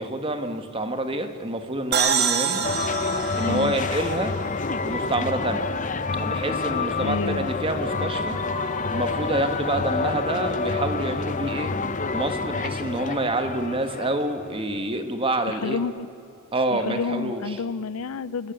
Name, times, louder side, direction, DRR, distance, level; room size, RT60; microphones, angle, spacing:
voice 1, 0.0-2.7 3.3-4.4 4.8-5.7 6.2-8.4 8.9-11.7 12.1-15.8 16.5-17.4, right 1 dB, 25° right, 7 dB, 1.5 m, -27 dB
sound 1, 1.9-5.5, right 7 dB, 50° right, 1.6 m, -27 dB
sound 2, 2.6-14.6, left 4 dB, 35° left, 0.7 m, -28 dB
voice 2, 3.4-3.8 7.0-7.5 15.5-16.1 16.7-18.5, left 4 dB, 75° left, 18 dB, 0.5 m, -29 dB
Screaming, 8.2-11.2, equal, ahead, 1.3 m, -43 dB
27.5 x 14.0 x 9.3 m, 2.6 s
head